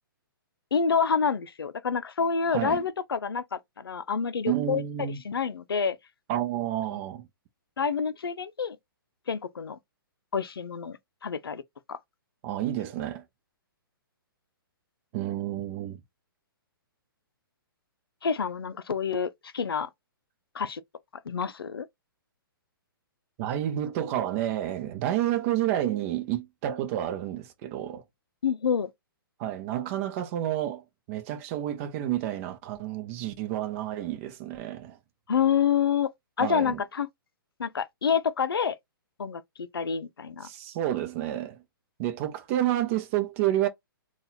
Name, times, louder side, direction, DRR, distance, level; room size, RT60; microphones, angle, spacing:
voice 1, 0.7-6.0 7.8-8.8 9.3-9.8 10.3-11.6 11.9-12.0 18.2-19.9 20.5-20.8 21.3-21.9 28.4-28.9 35.3-36.1 36.4-37.1 37.6-38.8 39.2-40.5, left 6 dB, 85° left, 0.5 m, -28 dB
voice 2, 2.5-2.8 4.5-5.2 6.3-7.3 12.4-13.2 15.1-16.0 23.4-28.0 29.4-35.0 36.4-36.8 40.4-41.6 42.0-43.7, right 12 dB, 35° right, 0.8 m, -30 dB
4.0 x 2.4 x 2.7 m
hypercardioid pair, 130°, 12 cm